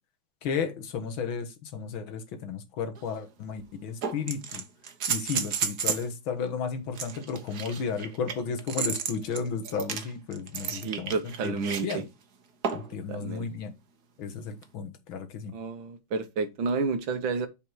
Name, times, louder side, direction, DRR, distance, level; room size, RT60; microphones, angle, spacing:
voice 1, 0.4-4.6 5.1-12.0 12.7-13.7 14.2-15.5, left 5 dB, 90° left, 2.1 m, -33 dB
sound 1, 3.0-3.1 4.0-6.1 6.9-12.0 12.6-13.0 14.6-14.7, right 7 dB, 55° right, 1.6 m, -32 dB
voice 2, 10.7-12.0 13.1-13.5 15.5-17.5, right 4 dB, 80° right, 1.9 m, -31 dB
7.4 x 5.3 x 4.6 m
omnidirectional pair, 2.1 m